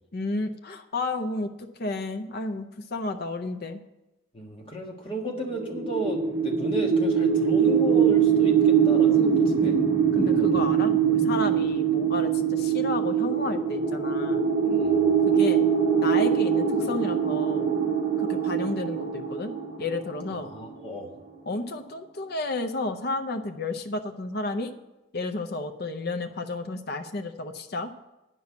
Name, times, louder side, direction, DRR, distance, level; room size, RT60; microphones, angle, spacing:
voice 1, 0.1-3.8 10.2-14.4 15.3-15.6 16.0-17.7 18.2-19.5 19.8-20.5 21.5-24.7 25.1-27.9, left 2 dB, 55° left, 6 dB, 0.6 m, -32 dB
voice 2, 4.3-9.8 10.1-10.7 14.6-15.1 20.4-21.1, right 1 dB, 25° left, 0 dB, 1.6 m, -34 dB
sound 1, 5.5-20.6, right 7 dB, 20° right, 1.2 m, -23 dB
9.6 x 5.5 x 8.3 m, 0.98 s
head